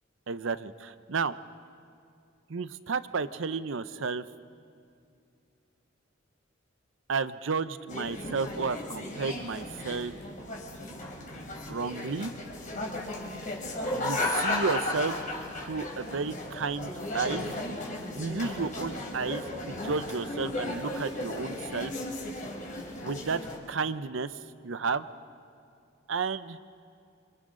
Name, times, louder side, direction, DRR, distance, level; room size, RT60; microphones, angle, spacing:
voice 1, 0.3-1.4 2.5-4.2 7.1-10.1 11.7-12.3 13.9-15.2 15.5-17.5 18.1-21.9 23.0-23.4 23.7-24.3 24.6-25.1 26.1-26.6, right 4 dB, 70° right, 14 dB, 0.7 m, -32 dB
sound 1, 7.9-23.6, left 2 dB, 40° left, 3.5 m, -35 dB
27.5 x 26.0 x 3.8 m, 2.4 s
head